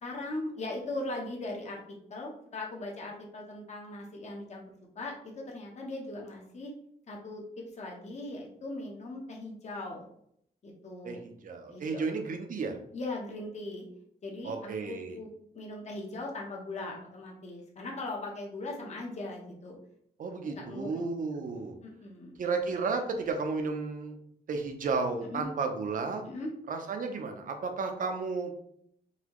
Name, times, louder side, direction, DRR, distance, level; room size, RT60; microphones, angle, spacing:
voice 1, 0.0-4.7 5.0-6.7 7.1-10.1 10.6-11.2 11.7-12.1 12.9-13.9 14.2-14.5 14.9-19.8 20.4-21.0 21.8-22.4 25.2-25.5 26.2-26.5, left 2 dB, 45° left, -1 dB, 0.8 m, -39 dB
voice 2, 11.0-12.8 14.4-15.2 20.2-21.8 22.4-24.2 24.5-26.2 26.7-28.5, right 4 dB, 55° right, 5 dB, 0.6 m, -33 dB
4.0 x 2.7 x 3.0 m, 0.69 s
wide cardioid pair, 140°, 17 cm